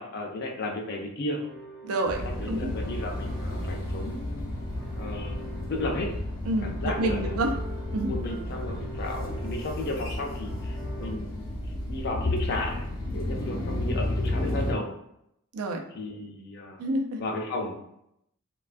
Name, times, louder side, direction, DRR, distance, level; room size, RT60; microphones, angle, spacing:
voice 1, 0.0-1.4 2.2-4.5 5.0-6.1 6.6-7.4 8.0-11.5 11.9-12.9 13.1-14.9 15.9-16.8 17.2-17.8, left 2 dB, 50° left, 1 dB, 0.4 m, -34 dB
sound 1, 1.4-11.1, right 1 dB, 30° right, 0.6 m, -44 dB
voice 2, 1.8-2.2 2.5-2.7 6.4-7.5 7.9-8.2 15.5-15.8 16.8-17.2, right 1 dB, 85° right, 2 dB, 0.4 m, -28 dB
sound 2, 2.1-14.7, left 1 dB, 70° left, 0.9 m, -32 dB
2.4 x 2.2 x 2.4 m, 0.79 s
head